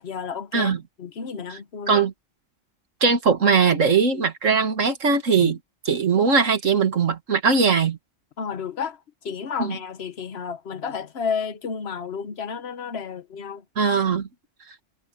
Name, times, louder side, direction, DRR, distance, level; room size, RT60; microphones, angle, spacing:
voice 1, 0.0-2.0 5.4-5.5 8.4-9.0 9.2-13.6, left 6 dB, 55° left, 1.3 m, -31 dB
voice 2, 3.0-5.6 5.9-8.0 9.6-9.8 13.8-14.3, right 5 dB, 85° right, 2.3 m, -20 dB
omnidirectional pair, 1.3 m